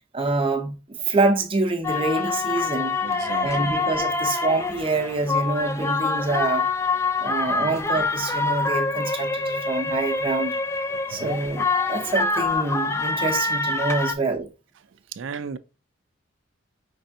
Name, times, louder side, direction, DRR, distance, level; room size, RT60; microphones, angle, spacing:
voice 1, 0.1-3.0 3.4-6.7 7.2-10.6 11.1-14.5, right 3 dB, 30° right, 0.7 m, -26 dB
sound 1, 1.8-14.1, left 3 dB, 15° left, 0.3 m, -25 dB
voice 2, 3.0-3.8 7.5-7.8 10.9-11.4 15.1-15.6, right 5 dB, 75° right, 0.4 m, -36 dB
5.4 x 3.3 x 2.7 m
head